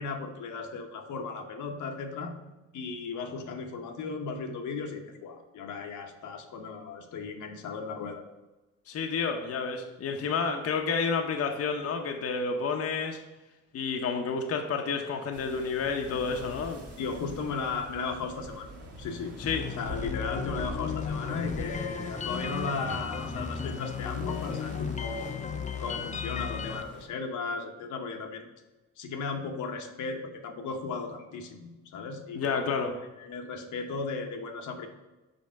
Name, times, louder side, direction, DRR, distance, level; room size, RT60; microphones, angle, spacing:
voice 1, 0.0-2.3 2.7-8.2 17.0-19.3 19.8-25.3 25.8-28.5 29.0-32.6 33.2-34.9, left 4 dB, 75° left, 4 dB, 1.0 m, -36 dB
voice 2, 8.9-13.2 13.7-16.8 19.4-19.6 32.4-32.9, left 5 dB, 50° left, 3 dB, 0.8 m, -30 dB
sound 1, 15.3-27.1, equal, 50° right, 1.6 m, -43 dB
sound 2, 19.4-26.8, left 7 dB, 25° left, 0.4 m, -35 dB
5.3 x 4.5 x 5.6 m, 1.1 s
cardioid pair, 90°, 30 cm